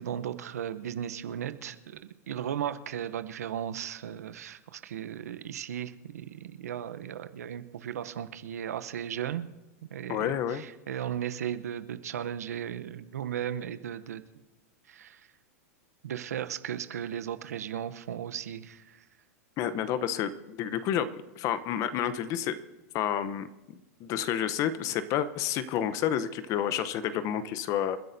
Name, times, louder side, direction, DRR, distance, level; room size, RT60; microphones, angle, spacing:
voice 1, 0.0-9.5 9.9-14.2 14.9-15.3 16.0-19.0, right 9 dB, 85° right, 11 dB, 0.8 m, -36 dB
voice 2, 10.1-10.6 19.6-21.1 21.4-22.6 22.9-23.5 24.0-28.0, left 10 dB, 40° left, 13 dB, 0.8 m, -29 dB
28.5 x 10.5 x 2.7 m, 1.0 s
hypercardioid pair, 125°, 8 cm